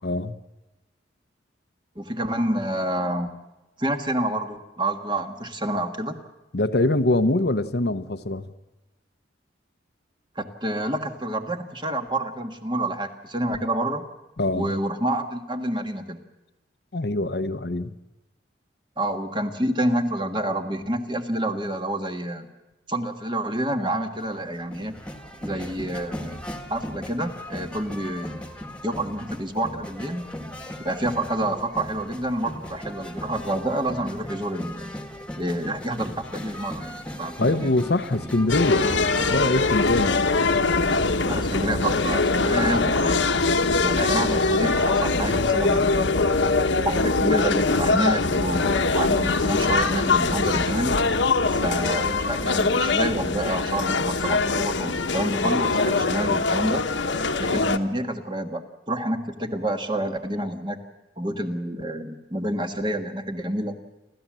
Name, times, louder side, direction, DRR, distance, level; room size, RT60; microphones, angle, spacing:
voice 1, 0.0-0.4 6.5-8.5 14.4-14.7 16.9-17.9 37.4-38.9 39.3-40.3 44.1-44.3, left 2 dB, 60° left, 11 dB, 0.8 m, -24 dB
voice 2, 1.9-3.3 3.8-6.1 10.3-14.0 14.5-16.2 19.0-22.5 22.9-24.9 25.4-26.4 26.7-28.4 28.8-30.2 30.8-34.9 35.4-37.7 41.2-43.2 43.8-46.1 46.8-51.0 51.5-56.8 57.4-60.8 61.2-63.8, right 1 dB, 25° right, 6 dB, 1.6 m, -28 dB
sound 1, 24.2-39.4, equal, 5° left, 1.7 m, -37 dB
sound 2, 38.5-57.8, left 3 dB, 85° left, 1.3 m, -22 dB
30.0 x 13.0 x 7.5 m, 1.1 s
head